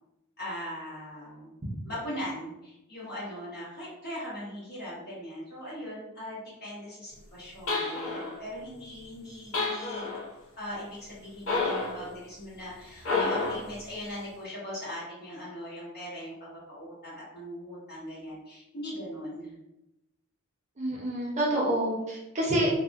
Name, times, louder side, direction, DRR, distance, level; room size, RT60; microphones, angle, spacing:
voice 1, 0.4-1.5 1.8-10.1 10.6-19.6, equal, 50° left, -9 dB, 1.5 m, -40 dB
sound 1, 7.7-8.4 9.5-10.3 11.5-12.0 13.0-13.7, left 3 dB, 65° left, 0.6 m, -29 dB
voice 2, 20.8-22.7, right 1 dB, 35° right, -3 dB, 0.6 m, -28 dB
2.8 x 2.1 x 2.4 m, 0.91 s
head